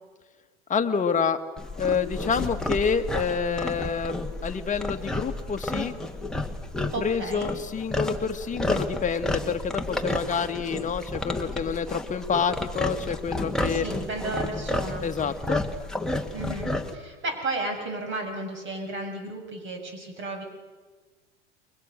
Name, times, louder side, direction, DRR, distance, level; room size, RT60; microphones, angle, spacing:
voice 1, 0.7-1.4 1.8-6.0 7.0-13.9 15.0-15.6, left 6 dB, 20° left, 6 dB, 1.9 m, -28 dB
sound 1, 1.6-17.0, left 1 dB, ahead, 2.0 m, -31 dB
voice 2, 6.9-7.5 13.7-15.0 16.3-20.4, right 2 dB, 35° right, 4 dB, 7.0 m, -33 dB
29.5 x 22.5 x 6.7 m, 1.3 s
hypercardioid pair, 95°, 34 cm